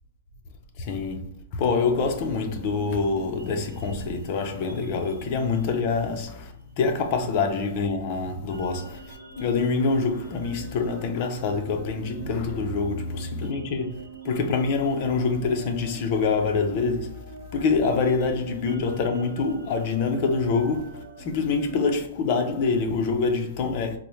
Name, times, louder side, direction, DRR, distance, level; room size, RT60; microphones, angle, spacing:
voice 1, 0.8-17.2 17.5-24.0, left 4 dB, 35° left, 0.5 m, -26 dB
sound 1, 2.2-22.0, right 5 dB, 75° right, 0.8 m, -44 dB
4.2 x 2.0 x 3.0 m
hypercardioid pair, 170°, 0 cm